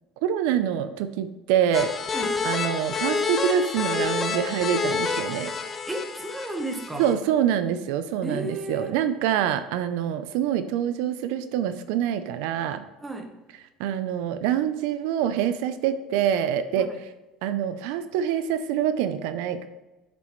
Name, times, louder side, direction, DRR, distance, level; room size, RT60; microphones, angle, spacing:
voice 1, 0.2-1.9 2.4-5.5 7.0-12.8 13.8-16.9 17.4-19.7, right 9 dB, 80° right, 11 dB, 0.6 m, -25 dB
sound 1, 1.7-7.1, left 4 dB, 20° left, 1.0 m, -28 dB
voice 2, 5.9-7.2 8.2-8.9 13.0-13.3 16.7-17.0, right 1 dB, 10° right, 5 dB, 1.1 m, -33 dB
9.4 x 7.6 x 3.1 m, 1.1 s
cardioid pair, 145°, 0 cm